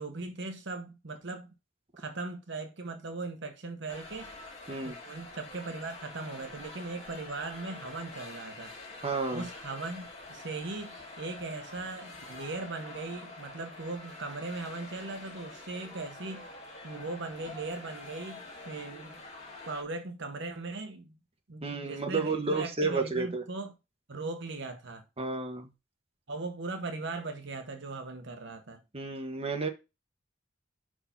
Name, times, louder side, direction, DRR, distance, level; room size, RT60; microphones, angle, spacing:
voice 1, 0.0-1.5 2.0-4.3 4.8-8.7 9.3-16.5 16.8-19.2 19.6-21.2 21.5-23.7 24.1-25.0 26.3-28.8, right 3 dB, 65° right, 1.0 m, -39 dB
barca versus arsenal preview, 3.9-19.8, left 2 dB, 30° left, 2.6 m, -46 dB
voice 2, 9.0-9.4 21.6-23.4 25.2-25.7 28.9-29.7, right 3 dB, 30° right, 1.3 m, -31 dB
5.6 x 4.7 x 5.7 m
head